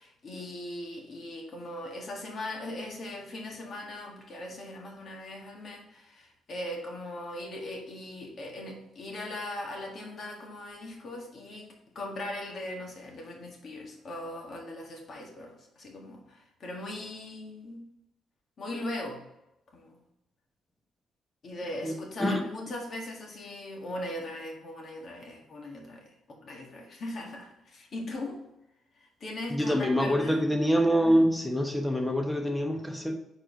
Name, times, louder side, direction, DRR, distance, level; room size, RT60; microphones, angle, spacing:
voice 1, 0.0-17.8 18.6-19.2 19.7-20.0 21.4-28.4 29.0-30.4, left 1 dB, 50° left, 0 dB, 1.8 m, -39 dB
voice 2, 21.8-22.4 29.5-33.1, equal, 10° left, 4 dB, 1.0 m, -25 dB
4.8 x 4.5 x 5.1 m, 0.86 s
cardioid pair, 90°, 0 cm